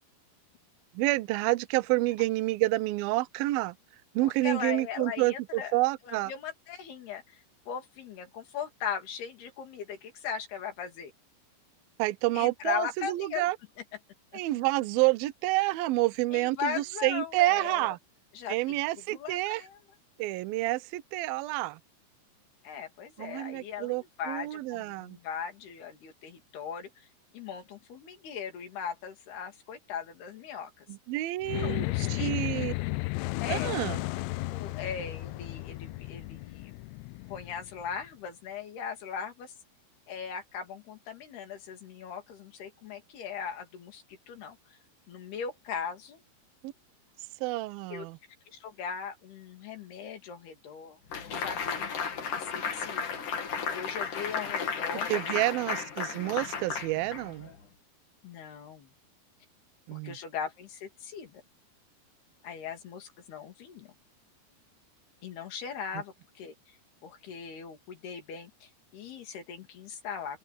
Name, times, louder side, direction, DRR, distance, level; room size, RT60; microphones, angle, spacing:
voice 1, 0.9-3.8 4.1-6.3 12.0-13.6 14.3-18.0 18.5-19.6 20.2-21.8 23.2-25.2 30.9-32.7 33.5-34.0 46.6-46.7 47.4-48.2 55.1-57.5 59.9-60.2, right 18 dB, 75° right, 2.4 m, -29 dB
voice 2, 4.2-5.8 6.0-11.1 12.3-13.5 14.3-14.4 16.3-17.9 18.3-18.8 19.1-19.8 22.6-27.1 27.3-30.9 31.5-32.3 33.4-34.1 34.5-36.7 37.3-39.5 40.1-44.8 45.1-46.2 47.9-48.1 48.6-51.0 51.2-53.2 53.7-55.2 58.2-58.9 59.9-61.4 62.4-63.9 65.2-66.7 67.0-70.4, left 7 dB, 70° left, 4.9 m, -39 dB
sound 1, 31.4-38.0, left 24 dB, 85° left, 2.7 m, -34 dB
sound 2, 51.1-57.6, left 6 dB, 50° left, 4.1 m, -34 dB
open air
omnidirectional pair, 4.8 m